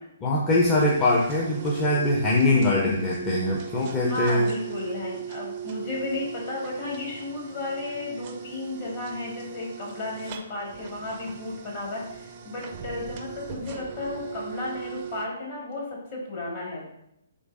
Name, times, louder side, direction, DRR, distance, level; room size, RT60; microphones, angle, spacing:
voice 1, 0.2-4.5, left 1 dB, 20° left, -4 dB, 0.5 m, -22 dB
sound 1, 0.6-15.3, right 8 dB, 35° right, 0.4 m, -39 dB
voice 2, 4.0-16.9, left 2 dB, 45° left, -3 dB, 1.5 m, -33 dB
3.8 x 3.1 x 2.4 m, 0.78 s
hypercardioid pair, 135°, 0 cm